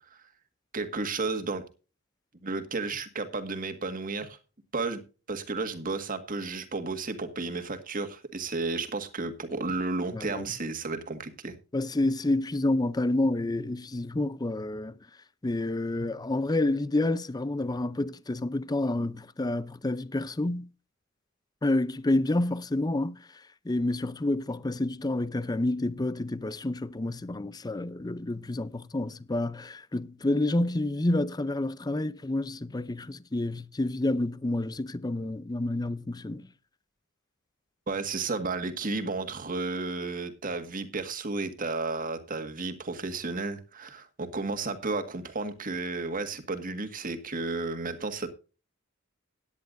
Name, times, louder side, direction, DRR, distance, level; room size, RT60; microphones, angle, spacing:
voice 1, 0.7-1.6 2.4-4.4 4.7-5.0 5.3-11.5 37.9-48.3, right 3 dB, 40° right, 1.7 m, -32 dB
voice 2, 10.1-10.4 11.7-14.9 15.4-20.7 21.6-23.2 23.7-36.5, left 2 dB, 20° left, 0.5 m, -29 dB
17.0 x 10.0 x 2.6 m
head